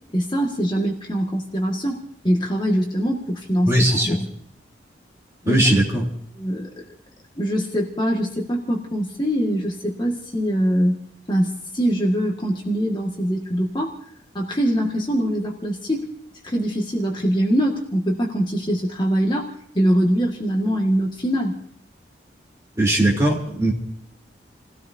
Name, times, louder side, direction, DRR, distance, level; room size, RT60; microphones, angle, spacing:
voice 1, 0.1-3.7 4.1-4.3 5.4-5.6 6.4-6.7 7.4-11.0 11.3-14.0 14.3-16.1 16.4-21.5, equal, 25° left, -1 dB, 1.8 m, -23 dB
voice 2, 3.7-4.2 5.5-6.0 22.7-23.7, right 1 dB, 15° right, -2 dB, 3.3 m, -19 dB
29.5 x 17.0 x 2.8 m, 0.67 s
head